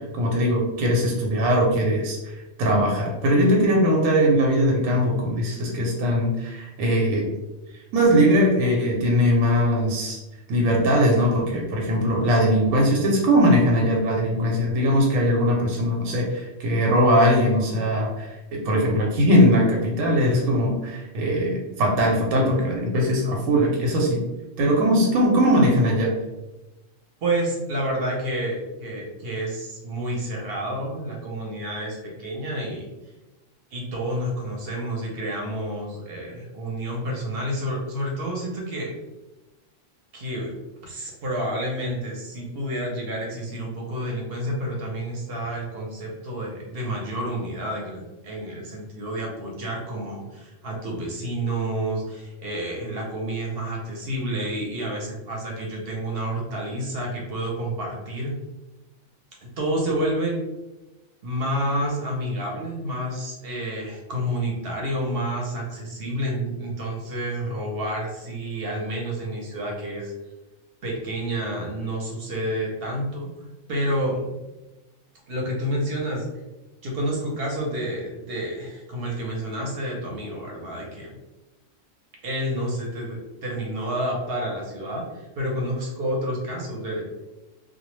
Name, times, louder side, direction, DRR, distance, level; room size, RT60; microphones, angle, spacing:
voice 1, 0.1-7.3 7.9-10.2 10.5-24.2 24.6-26.1, equal, 85° right, -1 dB, 1.0 m, -20 dB
voice 2, 27.2-32.9 33.7-38.9 40.1-40.5 40.8-58.3 59.4-60.4 61.2-70.1 70.8-73.3 73.7-74.3 75.3-76.2 76.8-81.1 82.2-87.0, right 1 dB, 55° right, -2 dB, 0.7 m, -29 dB
2.2 x 2.0 x 3.0 m, 1.1 s
omnidirectional pair, 1.3 m